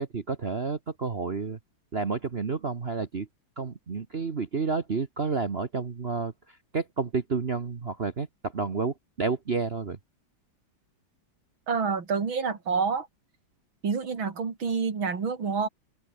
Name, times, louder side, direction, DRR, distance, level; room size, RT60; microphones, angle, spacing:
voice 1, 0.0-1.6 1.9-3.3 3.6-10.0, right 4 dB, 35° right, 1.3 m, -30 dB
voice 2, 11.7-13.1 13.8-15.7, right 5 dB, 90° right, 3.7 m, -28 dB
open air
omnidirectional pair, 2.1 m